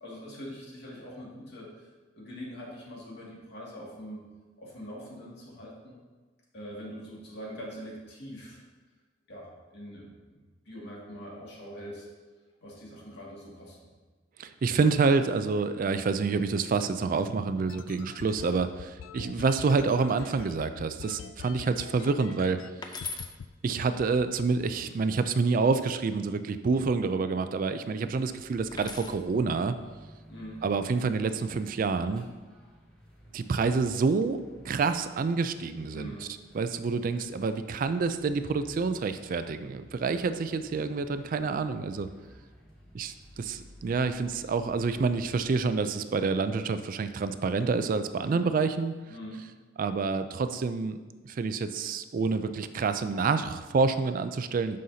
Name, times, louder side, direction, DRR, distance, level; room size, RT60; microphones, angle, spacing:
voice 1, 0.0-4.2 4.6-6.0 6.5-8.6 9.3-10.4 10.7-12.1 12.6-13.9 30.3-30.6 35.9-36.3 48.2-48.5 49.1-49.4, equal, 60° left, -4 dB, 2.1 m, -43 dB
voice 2, 14.4-22.6 23.6-29.7 30.6-32.2 33.3-34.4 34.6-36.1 36.5-42.1 42.9-48.9 49.8-51.0 51.2-54.8, right 4 dB, 45° right, 10 dB, 0.3 m, -28 dB
sound 1, 17.3-22.7 23.0-23.5 23.8-25.3, left 7 dB, 75° left, 0.3 m, -44 dB
sound 2, 22.8-23.3 25.6-26.2 28.7-29.2 30.6-31.0, left 4 dB, 20° left, 0.5 m, -40 dB
sound 3, 28.0-45.5, equal, 5° left, 2.1 m, -54 dB
9.4 x 6.4 x 2.8 m, 1.3 s
head